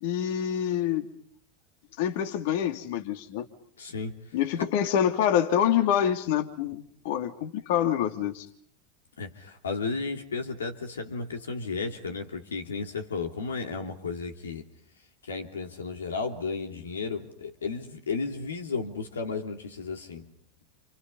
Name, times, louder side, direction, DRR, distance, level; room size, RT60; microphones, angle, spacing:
voice 1, 0.0-1.1 2.0-3.5 4.3-8.5, left 9 dB, 65° left, 6 dB, 2.9 m, -26 dB
voice 2, 3.8-4.4 9.2-14.6 15.2-20.3, left 4 dB, 85° left, 5 dB, 2.9 m, -33 dB
29.5 x 29.0 x 5.6 m, 0.62 s
hypercardioid pair, 90°, 0 cm